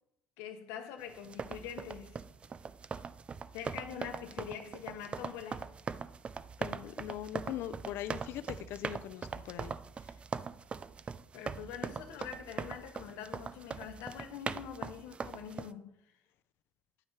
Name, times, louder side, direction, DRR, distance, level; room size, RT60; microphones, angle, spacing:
voice 1, 0.4-2.2 3.5-5.7 11.3-15.9, left 8 dB, 85° left, 0.9 m, -44 dB
sound 1, 1.2-15.7, right 5 dB, 25° right, 0.3 m, -41 dB
voice 2, 6.6-9.8, left 12 dB, 70° left, 0.5 m, -41 dB
9.2 x 5.6 x 4.6 m
cardioid pair, 130°, 4 cm